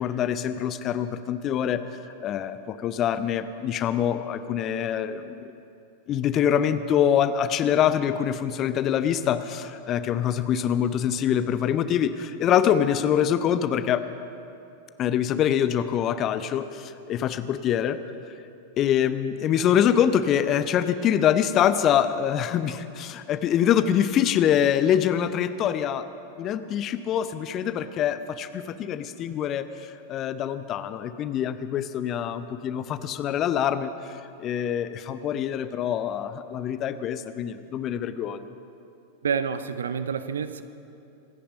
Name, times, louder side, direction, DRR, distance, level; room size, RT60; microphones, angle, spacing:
voice 1, 0.0-1.8 2.2-5.5 6.1-14.0 15.0-18.0 18.8-26.1 26.4-33.9 34.4-38.5, left 9 dB, 35° left, 12 dB, 0.7 m, -25 dB
voice 2, 39.2-40.6, right 6 dB, 65° right, 12 dB, 0.6 m, -28 dB
25.0 x 10.0 x 5.3 m, 2.7 s
figure-of-eight pair, 90°, 0 cm